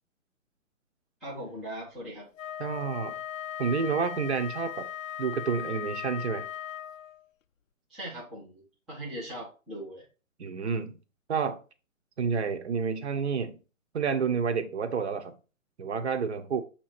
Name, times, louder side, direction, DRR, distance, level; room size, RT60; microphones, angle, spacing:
voice 1, 1.2-2.3 7.9-10.1, right 1 dB, ahead, 0.5 m, -40 dB
Wind instrument woodwind instrument, 2.4-7.2, left 11 dB, 75° left, 0.5 m, -38 dB
voice 2, 2.6-3.2 3.6-4.9 5.2-6.5 10.4-11.0 11.3-11.6 12.2-13.6 13.9-15.3 15.8-16.6, right 6 dB, 55° right, 1.1 m, -29 dB
7.0 x 3.0 x 4.8 m
hypercardioid pair, 145°, 40 cm